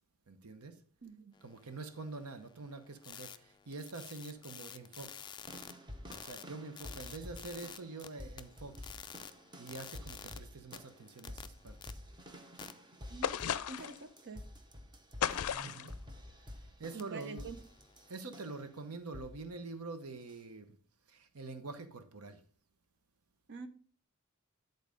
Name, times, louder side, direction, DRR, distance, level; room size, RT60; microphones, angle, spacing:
voice 1, 0.3-0.8 1.4-5.3 6.1-8.9 9.6-12.0 15.6-16.0 16.8-17.5 18.1-20.8 21.1-22.4, right 3 dB, 90° right, 9 dB, 0.9 m, -46 dB
voice 2, 1.0-1.4 13.1-13.3 13.7-14.4 16.9-17.6 23.5-23.7, right 4 dB, 55° right, 10 dB, 0.8 m, -46 dB
sound 1, 1.3-5.7 6.1-8.1 8.4-10.4 10.7-11.9 12.6-12.7 17.0-18.3, left 7 dB, 20° left, 0.3 m, -51 dB
sound 2, 5.5-18.7 19.1-19.5 20.3-20.4, equal, 20° right, 0.9 m, -50 dB
sound 3, 13.2-14.0 15.2-15.9, left 8 dB, 85° left, 0.4 m, -35 dB
10.5 x 4.0 x 5.1 m, 0.43 s
head